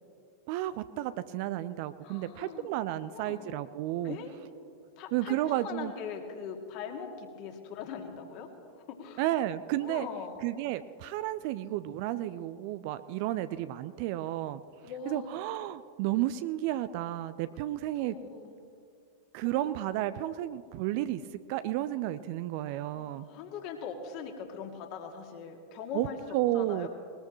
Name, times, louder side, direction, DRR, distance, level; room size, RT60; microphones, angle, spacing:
voice 1, 0.5-4.2 5.1-5.9 9.2-10.1 10.4-14.6 15.1-18.2 19.3-23.3 25.9-26.9, right 14 dB, 50° right, 13 dB, 0.4 m, -32 dB
voice 2, 2.0-2.7 3.0-3.5 4.0-4.3 5.0-8.5 8.9-9.2 9.8-10.4 14.8-15.5 18.0-18.6 22.9-26.2 26.5-26.9, left 6 dB, 45° left, 3 dB, 2.2 m, -41 dB
21.0 x 20.0 x 3.1 m, 2.3 s
figure-of-eight pair, 90°, 0 cm